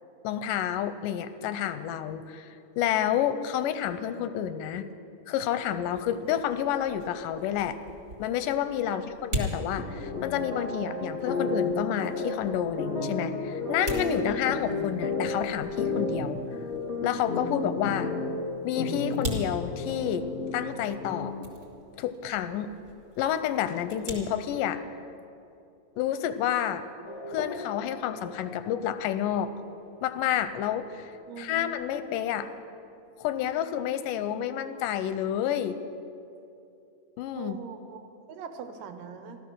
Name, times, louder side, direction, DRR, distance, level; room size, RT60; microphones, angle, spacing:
voice 1, 0.2-4.9 5.3-7.8 8.2-16.4 17.0-18.1 18.6-20.3 20.5-21.3 22.0-22.7 23.2-24.8 26.0-26.9 27.3-29.5 30.0-32.5 33.2-35.8 37.2-37.6, left 10 dB, 85° left, 11 dB, 2.2 m, -29 dB
sound 1, 5.8-24.2, equal, 35° right, 2.5 m, -42 dB
sound 2, 9.8-21.5, left 3 dB, 35° left, 1.2 m, -32 dB
Race car auto racing / Accelerating revving vroom, 27.0-33.1, left 2 dB, 65° left, 1.1 m, -45 dB
voice 2, 31.3-32.2 37.4-38.0 38.3-39.4, right 6 dB, 85° right, 7 dB, 2.6 m, -42 dB
14.0 x 13.0 x 6.3 m, 2.6 s
omnidirectional pair, 3.8 m